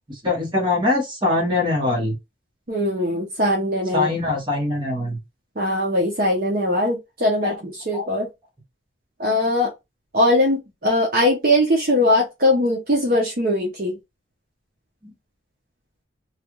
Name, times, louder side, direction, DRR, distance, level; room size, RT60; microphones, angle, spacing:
voice 1, 0.1-2.1 3.9-5.2 7.4-7.5 7.9-8.1 15.0-15.1, left 2 dB, 25° right, 1.2 m, -23 dB
voice 2, 2.7-4.1 5.6-8.3 9.2-9.7 10.1-14.0, left 1 dB, 45° right, 0.8 m, -20 dB
3.2 x 2.4 x 3.0 m
head